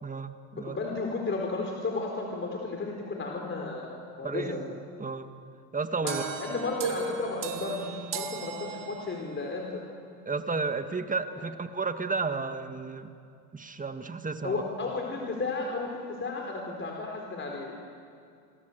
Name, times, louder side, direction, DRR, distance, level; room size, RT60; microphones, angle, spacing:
voice 1, 0.0-0.8 4.2-5.3 5.7-6.3 10.3-13.1 13.5-14.6, right 4 dB, 20° right, 8 dB, 1.9 m, -33 dB
voice 2, 0.6-4.6 6.0-9.8 11.4-11.5 14.4-17.9, left 3 dB, 25° left, 1 dB, 4.3 m, -33 dB
sound 1, 6.1-9.4, right 6 dB, 45° right, 2.7 m, -36 dB
28.5 x 22.5 x 8.0 m, 2.3 s
hypercardioid pair, 85°, 44 cm